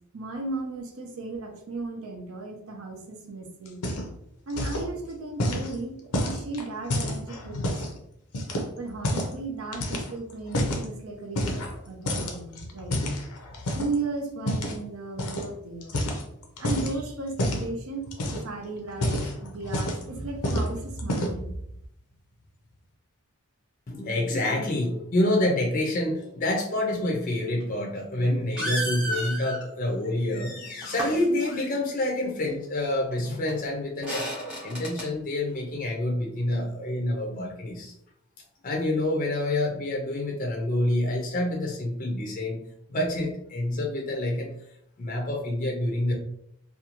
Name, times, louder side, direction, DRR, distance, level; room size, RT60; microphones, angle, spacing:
voice 1, 0.1-3.8 4.5-6.0 6.2-7.8 8.8-13.0 13.7-15.9 16.6-21.6, right 3 dB, 70° right, 4 dB, 0.6 m, -35 dB
sound 1, 3.7-4.2 4.5-4.9 5.4-7.9 8.3-9.4 9.7-10.9 11.3-11.8 12.1-14.0 14.5-14.8 15.2-15.5 15.8-16.9 17.4-17.7 18.1-18.5 18.9-20.1 20.4-20.7 21.0-21.5, left 1 dB, 90° left, 0.6 m, -29 dB
voice 2, 23.9-34.3 34.6-37.9 38.6-42.6 42.9-44.5 45.0-46.1, left 1 dB, 35° left, -1 dB, 0.4 m, -27 dB
sound 2, 27.6-27.7 28.5-29.6 30.8-31.1 33.1-33.2 33.5-33.6 34.0-35.1, right 1 dB, 5° right, 0.8 m, -31 dB
2.5 x 2.2 x 2.8 m, 0.74 s
head